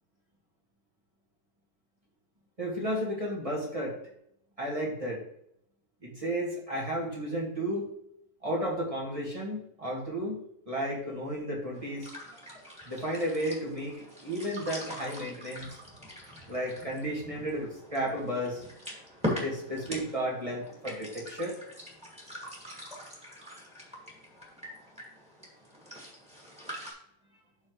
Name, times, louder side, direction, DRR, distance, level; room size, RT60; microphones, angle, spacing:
voice 1, 2.6-4.0 4.6-5.2 6.0-7.9 8.4-12.1 12.9-15.8 16.5-18.6 19.3-21.6, equal, 20° right, -4 dB, 1.9 m, -33 dB
sound 1, 11.7-26.9, left 1 dB, 5° right, 2.3 m, -42 dB
12.5 x 4.4 x 3.2 m, 0.75 s
omnidirectional pair, 1.7 m